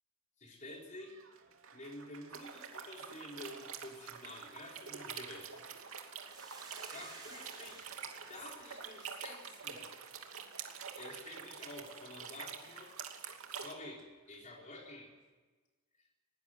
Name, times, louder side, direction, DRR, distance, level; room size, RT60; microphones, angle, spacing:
voice 1, 0.4-1.2 1.7-5.7 6.9-7.9 8.3-9.9 11.0-12.9 13.5-15.1, left 1 dB, 35° left, 0 dB, 3.9 m, -50 dB
Applause, 0.6-15.3, right 5 dB, 75° right, 2.7 m, -62 dB
sound 1, 2.3-13.7, right 6 dB, 90° right, 2.7 m, -47 dB
Hiss, 6.3-10.8, right 3 dB, 20° right, 6.2 m, -56 dB
20.0 x 19.0 x 9.4 m, 1.3 s
head